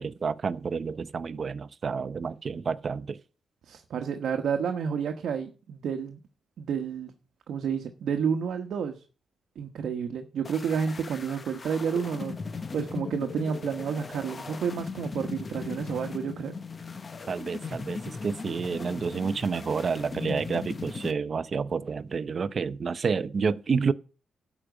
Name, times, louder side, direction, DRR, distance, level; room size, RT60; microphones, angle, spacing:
voice 1, 0.0-3.2 17.3-23.9, right 5 dB, 40° right, 0.6 m, -29 dB
voice 2, 3.7-6.2 6.6-7.1 7.5-9.0 9.6-12.4 12.7-16.5, right 7 dB, 70° right, 1.2 m, -30 dB
sound 1, 10.4-21.1, left 4 dB, 30° left, 0.8 m, -38 dB
12.0 x 5.1 x 8.1 m
cardioid pair, 125°, 0 cm